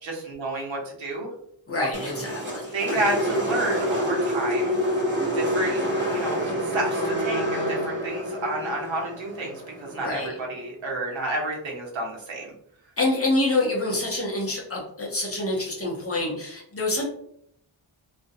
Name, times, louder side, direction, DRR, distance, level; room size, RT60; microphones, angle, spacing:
voice 1, 0.0-1.3 1.7-1.9 2.7-4.8 5.3-5.8 6.1-12.5, right 2 dB, 85° right, -1 dB, 0.9 m, -30 dB
voice 2, 1.7-3.1 9.9-10.4 13.0-17.0, left 2 dB, 30° left, -2 dB, 0.6 m, -27 dB
sound 1, 1.9-10.2, equal, 25° right, 0.8 m, -27 dB
2.4 x 2.1 x 2.6 m, 0.70 s
wide cardioid pair, 150°, 46 cm